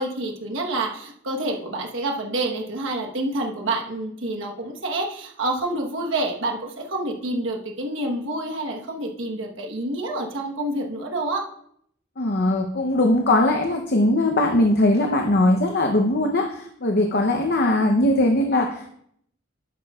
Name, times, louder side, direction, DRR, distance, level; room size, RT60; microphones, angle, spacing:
voice 1, 0.0-11.4, right 2 dB, 80° right, 0 dB, 1.2 m, -28 dB
voice 2, 12.2-18.9, left 1 dB, 55° left, 3 dB, 0.7 m, -20 dB
11.0 x 8.5 x 2.4 m, 0.69 s
head